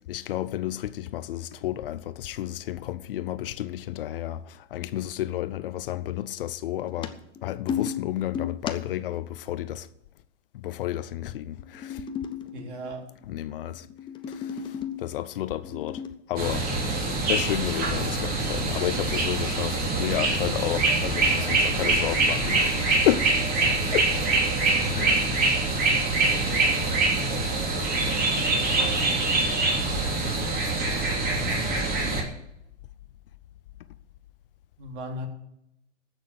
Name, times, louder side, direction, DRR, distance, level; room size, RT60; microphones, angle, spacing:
voice 1, 0.1-4.4 4.7-7.1 7.4-9.9 10.6-11.9 13.3-13.8 15.0-16.0 16.3-16.6 17.3-23.2 23.9-24.1 24.9-25.2, left 13 dB, 50° left, 0.7 m, -31 dB
sound 1, 6.9-9.2 11.4-13.2 13.7-15.1 15.6-16.1, left 7 dB, 15° left, 0.8 m, -34 dB
voice 2, 12.5-13.1 21.1-21.6 23.5-23.8 25.0-25.2 34.8-35.3, right 1 dB, 45° right, 3.4 m, -38 dB
sound 2, 16.4-32.2, right 3 dB, 25° right, 3.0 m, -24 dB
14.5 x 6.4 x 7.8 m
hypercardioid pair, 125°, 35 cm